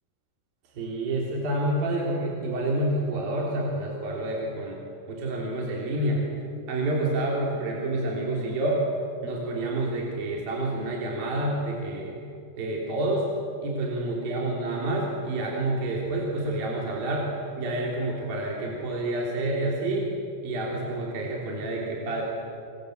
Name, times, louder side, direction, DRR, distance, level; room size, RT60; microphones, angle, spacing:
voice 1, 0.7-4.8 5.1-6.2 6.7-8.8 9.2-12.2 12.6-13.3 13.6-17.3 17.6-20.1 20.4-22.2, right 1 dB, 50° right, -2 dB, 4.8 m, -28 dB
29.5 x 23.5 x 7.9 m, 2.8 s
omnidirectional pair, 5.6 m